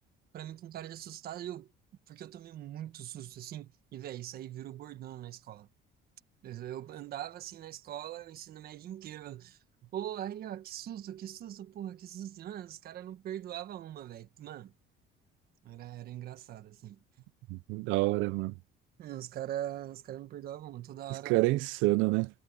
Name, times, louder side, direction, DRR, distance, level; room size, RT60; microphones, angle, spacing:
voice 1, 0.3-1.7 2.1-5.7 6.4-14.7 15.6-17.0 19.0-21.4, right 12 dB, 50° right, 1.5 m, -42 dB
voice 2, 17.5-18.5 21.3-22.3, right 21 dB, 80° right, 0.6 m, -27 dB
cardioid pair, 160°, 20 cm